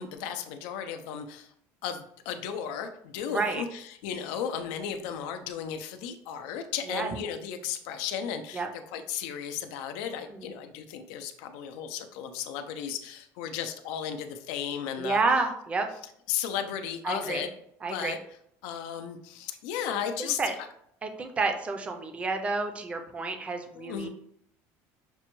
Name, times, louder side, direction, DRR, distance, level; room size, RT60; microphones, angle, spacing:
voice 1, 0.0-1.5 1.8-15.2 16.3-17.5 17.9-18.2 18.6-20.7 23.8-24.1, left 8 dB, 85° left, 7 dB, 0.4 m, -35 dB
voice 2, 3.3-3.6 6.9-7.1 8.5-8.7 10.4-10.6 15.0-15.9 17.0-17.4 17.8-18.2 20.2-20.5 21.0-24.1, right 3 dB, 20° right, 5 dB, 0.4 m, -29 dB
5.9 x 2.2 x 3.0 m, 0.71 s
cardioid pair, 155°, 6 cm